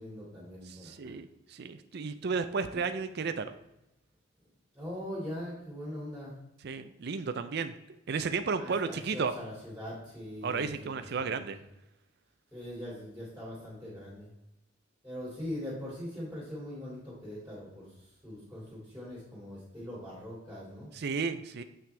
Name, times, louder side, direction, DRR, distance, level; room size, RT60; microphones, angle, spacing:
voice 1, 0.0-1.1 2.7-2.8 4.7-6.4 8.6-11.5 12.5-14.3 15.0-17.9 18.2-20.9, left 1 dB, 5° right, -8 dB, 2.8 m, -41 dB
voice 2, 0.6-3.5 6.6-7.7 8.1-9.3 10.4-11.6 20.9-21.6, right 5 dB, 50° right, 10 dB, 0.4 m, -33 dB
7.7 x 5.9 x 3.3 m, 0.88 s
head